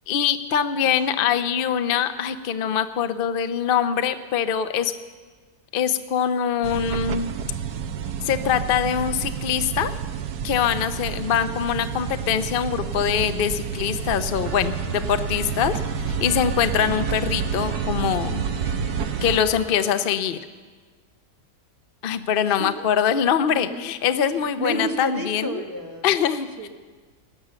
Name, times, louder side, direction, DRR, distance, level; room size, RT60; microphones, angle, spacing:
voice 1, 0.1-4.9 5.7-7.3 8.2-9.9 10.4-15.7 16.1-18.4 19.2-20.4 22.0-25.5 26.0-26.5, left 8 dB, 65° left, 10 dB, 0.5 m, -23 dB
voice 2, 0.8-1.4 17.0-17.1 22.4-22.9 23.4-24.0 24.3-26.3 26.6-26.7, right 1 dB, 15° right, 2 dB, 1.1 m, -33 dB
sound 1, 6.6-19.4, right 7 dB, 70° right, 1.3 m, -29 dB
Organ, 14.4-20.2, equal, 10° left, 1.9 m, -43 dB
18.5 x 10.5 x 6.9 m, 1.4 s
omnidirectional pair, 1.9 m